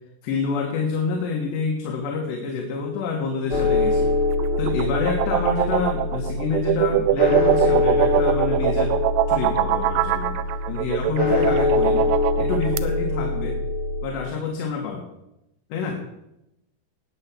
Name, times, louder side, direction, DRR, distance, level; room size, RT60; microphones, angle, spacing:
voice 1, 0.2-4.2 4.6-9.0 9.3-10.4 10.7-12.1 12.4-13.6 14.0-15.1 15.7-16.0, left 5 dB, 75° left, 2 dB, 3.6 m, -27 dB
sound 1, 3.5-14.1, left 2 dB, 40° left, 2.1 m, -24 dB
sound 2, 4.3-12.8, right 13 dB, 80° right, 2.6 m, -23 dB
19.0 x 6.9 x 7.5 m, 0.87 s
omnidirectional pair, 5.1 m